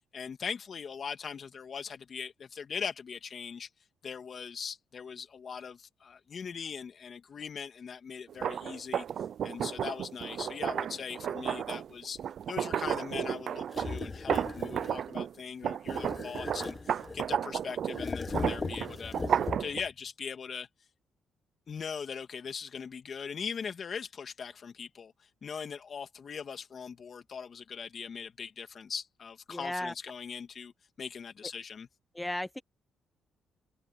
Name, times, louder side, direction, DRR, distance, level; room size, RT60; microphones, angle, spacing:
voice 1, 0.1-3.7 4.0-9.0 9.4-12.2 12.5-20.7 21.7-25.1 25.4-30.7 31.0-31.9, left 6 dB, 50° left, 2.6 m, -40 dB
sound 1, 8.3-15.3 15.6-19.8, right 9 dB, 60° right, 0.5 m, -33 dB
sound 2, 13.7-15.1 15.9-17.4 17.9-19.9, left 4 dB, 30° left, 1.5 m, -38 dB
voice 2, 29.5-29.9 32.1-32.6, left 1 dB, 10° left, 1.2 m, -35 dB
cardioid pair, 90°, 0 cm